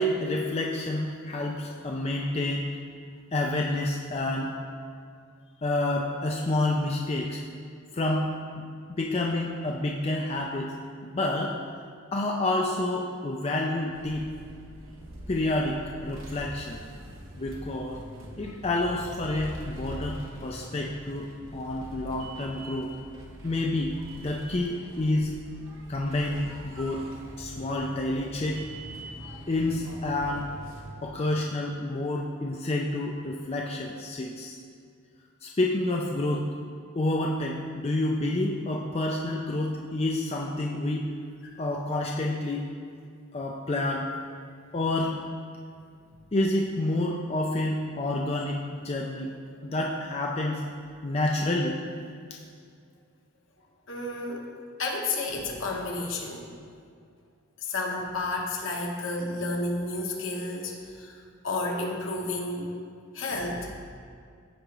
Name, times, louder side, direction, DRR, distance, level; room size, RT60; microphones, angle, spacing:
voice 1, 0.0-2.7 3.3-4.5 5.6-7.4 7.9-8.6 8.9-10.7 11.0-11.6 12.1-14.3 15.3-16.8 17.4-18.0 18.4-22.9 23.4-25.3 25.9-27.1 27.4-28.7 29.5-30.5 31.0-34.6 35.4-36.5 36.9-41.1 41.6-42.7 43.3-44.1 44.7-45.2 46.3-49.3 49.6-50.6 51.0-51.8, left 1 dB, 30° left, -1 dB, 0.4 m, -29 dB
sound 1, 13.9-30.9, right 1 dB, 75° right, 1.1 m, -44 dB
voice 2, 53.9-54.5 54.8-56.5 57.6-62.7 63.1-63.8, left 2 dB, 65° left, 0 dB, 1.1 m, -31 dB
14.5 x 5.0 x 3.0 m, 2.2 s
head